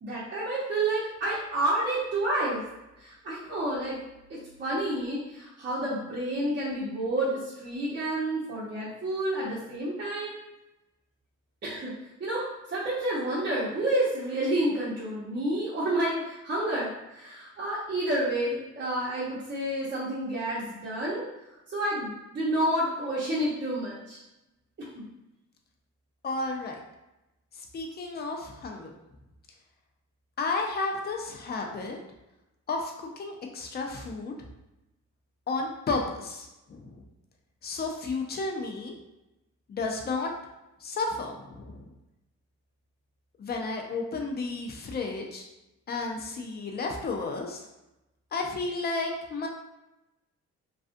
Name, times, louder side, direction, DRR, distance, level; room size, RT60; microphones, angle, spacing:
voice 1, 0.0-2.6 3.0-4.0 4.3-10.4 11.6-11.9 12.2-21.2 21.7-24.2 24.8-25.0, right 1 dB, 35° right, -9 dB, 0.8 m, -29 dB
voice 2, 26.2-26.8 27.6-28.9 30.4-32.0 32.7-34.5 35.5-37.0 37.6-38.9 39.7-40.3 40.8-41.9 43.4-45.5 45.9-47.6 48.3-49.5, left 3 dB, 35° left, 1 dB, 0.5 m, -32 dB
2.3 x 2.3 x 2.5 m, 0.95 s
cardioid pair, 90°, 30 cm